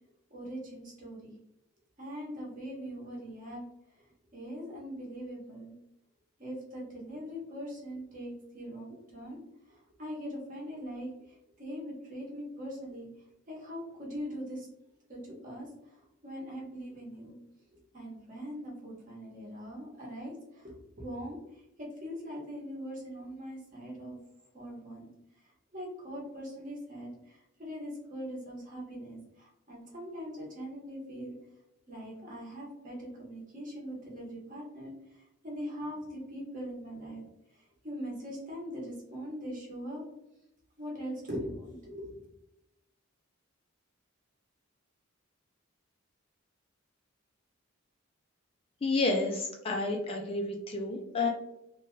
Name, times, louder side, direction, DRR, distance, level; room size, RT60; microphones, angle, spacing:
voice 1, 0.3-1.4 2.0-3.6 4.0-4.1 4.3-5.7 6.4-9.4 9.7-13.1 13.5-14.7 15.1-15.7 16.0-17.3 17.7-21.4 21.8-24.2 24.5-25.1 25.4-31.3 31.9-34.9 35.4-37.2 37.6-40.0 40.8-42.2, equal, 40° right, -3 dB, 0.9 m, -41 dB
voice 2, 48.8-51.3, left 3 dB, 25° left, 1 dB, 0.3 m, -30 dB
2.7 x 2.2 x 3.0 m, 0.88 s
head